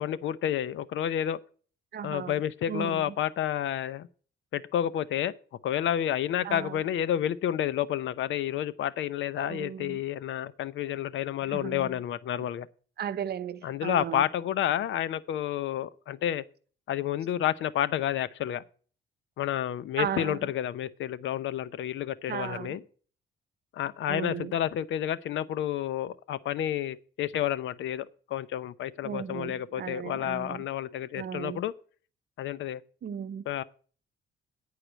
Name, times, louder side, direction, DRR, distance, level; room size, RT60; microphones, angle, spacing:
voice 1, 0.0-1.4 2.0-4.1 4.5-5.3 5.6-12.7 13.6-16.4 16.9-18.6 19.4-22.8 23.7-31.7 32.4-32.8 33.5-33.6, left 11 dB, 75° left, 0.7 m, -30 dB
voice 2, 1.9-2.4 2.7-3.1 6.4-6.8 9.4-10.0 11.5-11.9 13.0-14.2 20.0-20.5 22.3-22.8 24.1-24.5 29.0-30.6 31.2-31.6 33.0-33.5, right 8 dB, 55° right, 0.8 m, -36 dB
10.0 x 4.8 x 8.0 m
cardioid pair, 90°, 20 cm